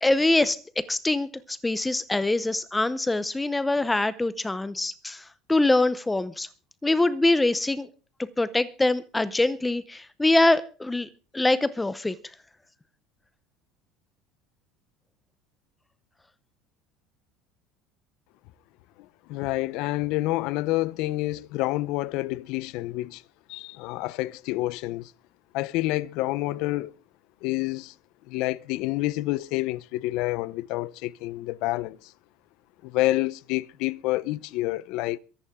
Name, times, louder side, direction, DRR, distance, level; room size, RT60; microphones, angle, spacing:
voice 1, 0.0-6.5 6.8-7.9 8.4-12.2, left 2 dB, 5° left, 0.7 m, -24 dB
voice 2, 19.3-23.2 23.5-25.1 25.5-26.9 27.4-27.9 28.3-32.1 32.8-35.2, left 18 dB, 55° left, 0.7 m, -28 dB
23.0 x 11.0 x 3.6 m
cardioid pair, 175°, 0 cm